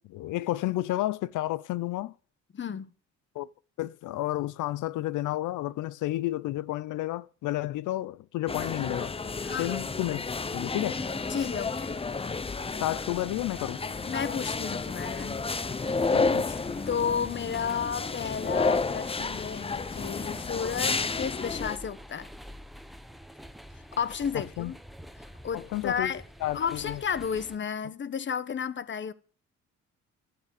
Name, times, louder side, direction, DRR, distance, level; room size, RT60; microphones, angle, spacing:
voice 1, 0.1-2.1 3.3-3.5 3.8-9.1 9.6-10.2 10.5-11.0 12.8-13.8 16.1-16.6 24.6-24.7 25.5-26.1 26.4-27.0, left 15 dB, 80° left, 0.6 m, -31 dB
voice 2, 2.5-2.9 9.4-9.9 11.3-11.9 14.1-15.4 16.9-22.3 23.7-24.8 25.4-26.2 26.5-29.1, left 7 dB, 40° left, 1.1 m, -32 dB
sound 1, 8.5-21.8, left 4 dB, 20° left, 0.6 m, -31 dB
sound 2, 10.6-27.6, equal, ahead, 1.1 m, -47 dB
12.5 x 8.4 x 8.4 m
cardioid pair, 90°, 30 cm